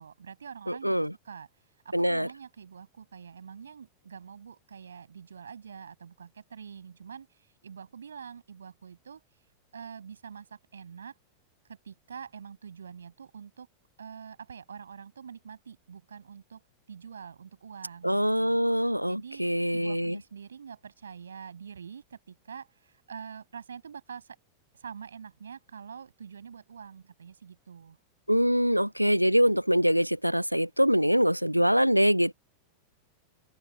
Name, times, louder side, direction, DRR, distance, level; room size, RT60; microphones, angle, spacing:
voice 1, 0.0-1.5 1.8-9.2 9.7-11.1 11.7-13.7 14.0-16.6 16.9-18.6 19.1-19.4 19.7-24.4 24.7-28.0, right 7 dB, 70° right, 7.2 m, -45 dB
voice 2, 0.7-1.1 1.9-2.3 18.0-20.2 28.3-32.3, equal, 90° right, 0.5 m, -24 dB
open air
figure-of-eight pair, 90°, 0 cm